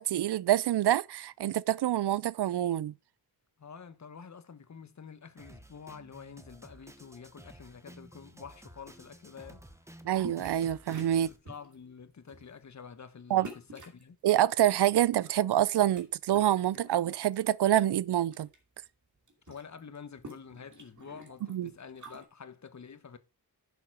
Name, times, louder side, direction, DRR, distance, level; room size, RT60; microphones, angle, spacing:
voice 1, 0.0-2.9 10.1-11.3 13.3-13.5 14.2-18.5 21.5-21.7, right 12 dB, 85° right, 0.5 m, -26 dB
voice 2, 3.6-9.9 11.1-14.2 19.5-23.2, left 6 dB, 45° left, 1.1 m, -48 dB
Drum kit, 5.4-11.4, right 1 dB, 5° right, 1.0 m, -53 dB
sound 1, 10.2-10.6 10.9-11.7 12.3-12.5 13.4-14.0 14.9-16.0 16.3-17.4 17.8-18.6 18.8-18.9 19.2-22.2, right 1 dB, 45° right, 2.8 m, -48 dB
11.0 x 6.9 x 4.8 m
wide cardioid pair, 145°, 39 cm